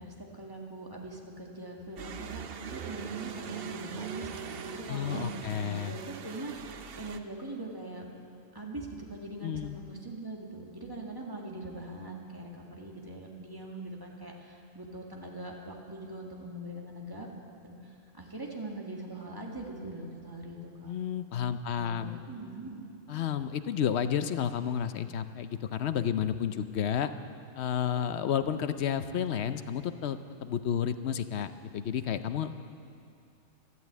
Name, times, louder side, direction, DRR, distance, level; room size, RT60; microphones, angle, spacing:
voice 1, 0.0-2.4 2.7-8.1 8.5-17.3 17.6-20.9 21.7-22.8, right 1 dB, 15° right, -1 dB, 1.8 m, -42 dB
sound 1, 2.0-7.2, right 7 dB, 55° right, 0.8 m, -41 dB
voice 2, 4.9-6.0 9.4-9.8 20.8-22.2 23.1-27.1 27.6-32.6, left 8 dB, 60° left, 11 dB, 0.8 m, -31 dB
12.5 x 12.5 x 8.3 m, 2.6 s
omnidirectional pair, 1.4 m